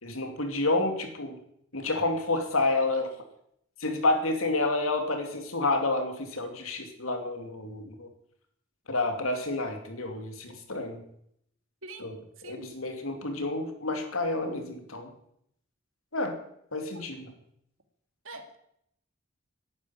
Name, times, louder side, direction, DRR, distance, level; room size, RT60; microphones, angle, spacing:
voice 1, 0.0-1.4 1.7-3.1 3.8-8.1 8.9-11.0 12.0-12.2 12.4-15.1 16.1-16.3 16.7-17.3, left 2 dB, 85° left, 5 dB, 2.9 m, -29 dB
voice 2, 18.2-18.6, right 2 dB, 75° right, 6 dB, 2.4 m, -44 dB
11.0 x 10.0 x 10.0 m, 0.74 s
head